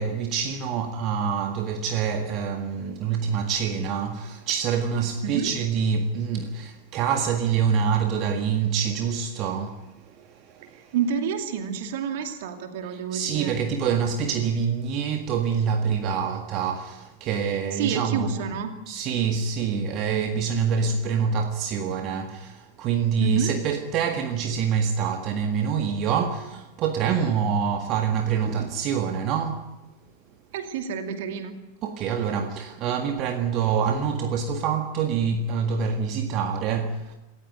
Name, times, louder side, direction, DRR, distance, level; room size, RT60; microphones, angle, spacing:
voice 1, 0.0-10.9 12.8-18.4 18.9-29.7 31.8-37.2, right 6 dB, 35° right, 1.8 m, -26 dB
voice 2, 10.9-13.5 17.7-18.7 23.2-23.5 30.5-31.5, right 7 dB, 55° right, 2.5 m, -28 dB
27.0 x 15.0 x 9.2 m
figure-of-eight pair, 90°, 0 cm